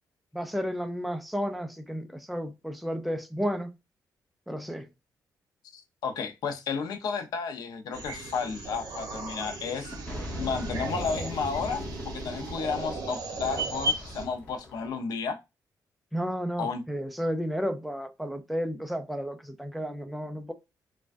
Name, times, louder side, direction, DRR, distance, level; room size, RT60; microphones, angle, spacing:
voice 1, 0.3-3.7 4.5-4.9 16.1-20.5, equal, ahead, 0.3 m, -32 dB
voice 2, 5.7-9.9 10.4-15.4 16.6-16.8, left 5 dB, 75° left, 0.6 m, -32 dB
sound 1, 7.9-14.2, right 1 dB, 70° right, 0.8 m, -35 dB
sound 2, 9.9-14.9, left 1 dB, 25° left, 0.9 m, -40 dB
3.2 x 2.2 x 2.4 m
wide cardioid pair, 175°, 7 cm